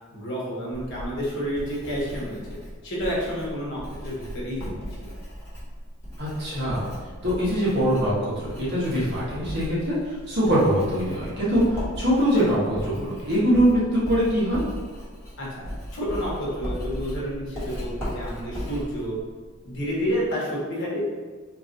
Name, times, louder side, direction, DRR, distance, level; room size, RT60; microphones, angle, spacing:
voice 1, 0.1-2.4 2.8-5.1 15.4-15.6 15.9-19.2 19.6-21.0, equal, 60° left, -5 dB, 1.1 m, -30 dB
Writing, 0.7-20.3, equal, 10° left, 1.3 m, -37 dB
voice 2, 6.2-6.9 7.2-14.6, equal, 55° right, -8 dB, 1.3 m, -23 dB
2.9 x 2.5 x 3.9 m, 1.5 s
head